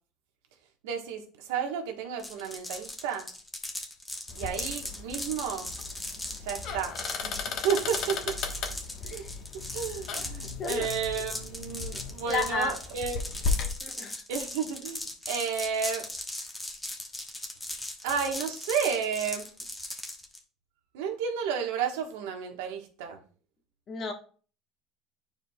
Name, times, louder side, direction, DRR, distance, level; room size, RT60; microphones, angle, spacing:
voice 1, 0.8-3.3 4.3-5.7 6.4-7.0 7.2-8.4 9.1-9.3 9.7-13.2 14.3-16.1 18.0-19.5 20.9-23.2, right 7 dB, 90° right, 4 dB, 1.3 m, -32 dB
sound 1, 2.2-20.4, left 1 dB, 10° left, 1.1 m, -38 dB
sound 2, 4.3-13.7, left 4 dB, 55° left, 1.2 m, -36 dB
voice 2, 9.0-9.3 10.6-10.9 12.3-12.7 13.8-14.2 23.9-24.1, left 4 dB, 40° left, 4 dB, 1.3 m, -32 dB
10.5 x 4.7 x 2.3 m, 0.41 s
supercardioid pair, 120°, 0 cm